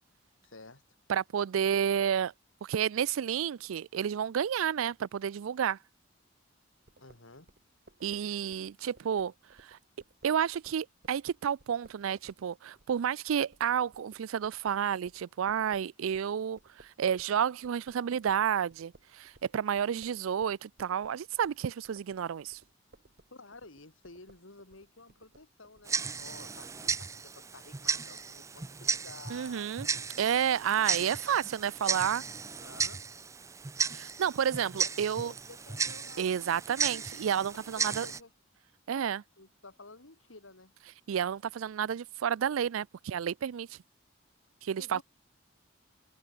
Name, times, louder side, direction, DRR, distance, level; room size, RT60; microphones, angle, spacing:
voice 1, 0.4-0.8 7.0-7.5 23.3-29.7 32.6-33.0 34.5-36.5 37.7-38.3 38.9-40.7 44.8-45.0, left 3 dB, 80° left, 3.0 m, -52 dB
voice 2, 1.1-2.3 2.6-5.8 8.0-9.3 9.6-9.8 10.2-22.6 29.3-29.9 30.2-32.2 33.9-35.3 36.2-38.1 38.9-39.2 41.1-43.8 44.6-45.0, right 8 dB, 90° right, 0.4 m, -30 dB
sound 1, 6.9-17.4 17.6-26.4, right 2 dB, 50° right, 1.2 m, -61 dB
Tick-tock, 25.9-38.2, right 5 dB, 15° right, 0.4 m, -35 dB
head